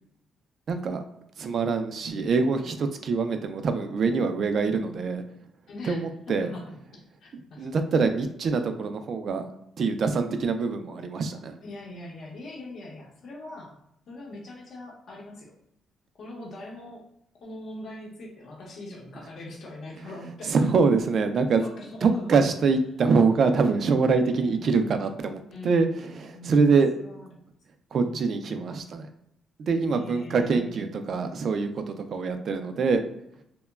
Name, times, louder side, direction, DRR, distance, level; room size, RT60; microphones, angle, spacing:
voice 1, 0.7-1.0 1.4-5.2 5.8-6.5 7.6-9.5 9.8-11.6 20.5-21.6 22.0-26.9 27.9-29.1 29.6-33.0, right 4 dB, 55° right, 7 dB, 0.3 m, -24 dB
voice 2, 5.7-6.8 7.2-8.0 11.6-15.5 16.2-17.0 17.4-20.7 21.6-22.5 23.5-24.1 24.4-24.7 25.5-26.1 26.3-27.3 28.0-28.3 29.9-30.9, left 1 dB, 60° left, -2 dB, 0.7 m, -42 dB
2.9 x 2.1 x 2.3 m, 0.77 s
cardioid pair, 90°, 0 cm